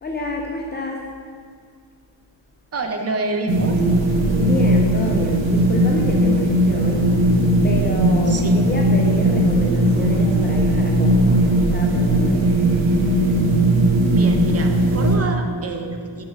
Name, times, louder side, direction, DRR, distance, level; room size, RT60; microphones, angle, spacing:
voice 1, 0.0-1.1 4.4-7.3 7.6-12.6, left 2 dB, 25° left, 0 dB, 0.3 m, -29 dB
voice 2, 2.7-3.8 8.3-8.6 14.1-16.2, right 3 dB, 30° right, 4 dB, 0.5 m, -27 dB
sound 1, 3.5-15.2, right 1 dB, 70° right, 1.1 m, -18 dB
9.0 x 4.8 x 2.5 m, 2.1 s
wide cardioid pair, 120°, 49 cm